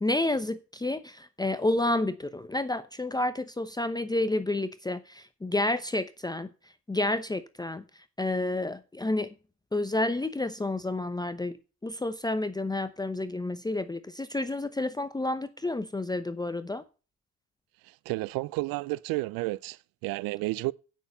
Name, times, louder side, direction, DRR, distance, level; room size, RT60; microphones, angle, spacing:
voice 1, 0.0-6.5 6.9-7.8 8.2-9.3 9.7-11.6 11.8-16.8, left 2 dB, 10° left, 0.8 m, -30 dB
voice 2, 18.1-20.7, right 21 dB, 70° right, 0.5 m, -31 dB
9.2 x 6.6 x 5.5 m
hypercardioid pair, 65°, 36 cm